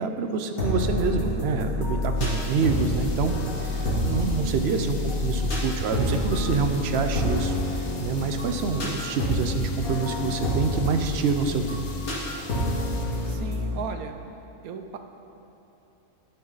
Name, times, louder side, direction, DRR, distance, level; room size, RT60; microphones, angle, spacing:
voice 1, 0.0-3.3 3.6-3.8 4.0-7.5 8.0-11.9, right 5 dB, 60° right, 7 dB, 0.8 m, -27 dB
sound 1, 0.6-13.7, left 1 dB, 80° left, 2.6 m, -28 dB
sound 2, 2.1-13.3, left 3 dB, 40° left, 0.6 m, -44 dB
voice 2, 4.8-5.3 13.3-14.1 14.6-15.0, right 6 dB, 85° right, 7 dB, 1.2 m, -37 dB
11.5 x 9.5 x 4.0 m, 2.9 s
omnidirectional pair, 1.5 m